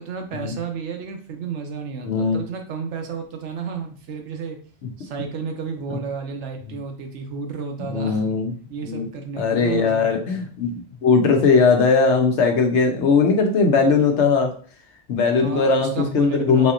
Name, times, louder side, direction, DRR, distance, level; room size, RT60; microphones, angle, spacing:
voice 1, 0.0-4.6 5.0-8.3 8.7-10.5 15.4-16.7, right 5 dB, 75° right, 4 dB, 1.0 m, -32 dB
voice 2, 2.0-2.4 5.9-6.0 7.8-8.5 8.8-9.0 9.4-14.5 15.1-16.7, left 4 dB, 75° left, 4 dB, 1.0 m, -19 dB
4.1 x 2.9 x 2.4 m, 0.43 s
omnidirectional pair, 1.2 m